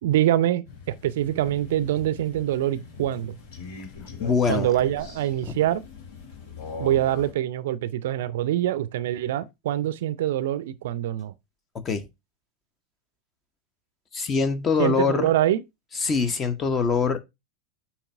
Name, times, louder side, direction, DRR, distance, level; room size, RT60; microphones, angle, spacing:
voice 1, 0.0-0.7 1.0-3.4 4.5-5.8 6.8-11.3 14.8-15.6, right 12 dB, 55° right, 0.5 m, -24 dB
Crow, 0.6-7.3, left 4 dB, 55° left, 2.8 m, -41 dB
voice 2, 4.2-4.7 5.4-5.5 11.7-12.1 14.1-15.3 16.0-17.2, left 5 dB, 25° left, 1.0 m, -23 dB
8.4 x 3.0 x 5.3 m
figure-of-eight pair, 90°, 0 cm